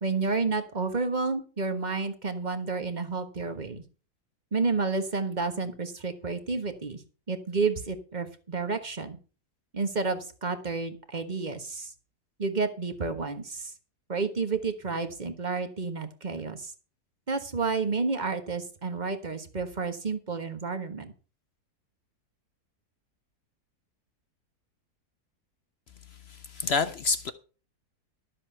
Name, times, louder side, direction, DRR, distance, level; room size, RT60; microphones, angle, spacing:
voice 1, 0.0-3.8 4.5-7.0 7.3-9.2 9.7-11.9 12.4-13.7 14.1-16.7 17.3-21.1, right 4 dB, 30° right, 1.4 m, -30 dB
voice 2, 26.3-27.3, left 4 dB, 60° left, 0.7 m, -28 dB
12.5 x 7.5 x 5.5 m
omnidirectional pair, 1.7 m